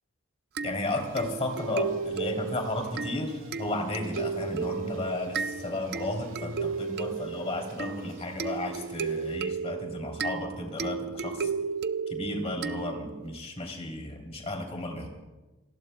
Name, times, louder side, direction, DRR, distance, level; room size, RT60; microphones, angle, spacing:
voice 1, 0.6-11.5 12.1-15.1, left 2 dB, 30° left, 2 dB, 3.0 m, -33 dB
sound 1, 0.6-13.3, right 5 dB, 50° right, 0.5 m, -34 dB
sound 2, 0.8-9.4, right 3 dB, 80° right, 7.0 m, -53 dB
29.0 x 19.0 x 2.2 m, 1.1 s
head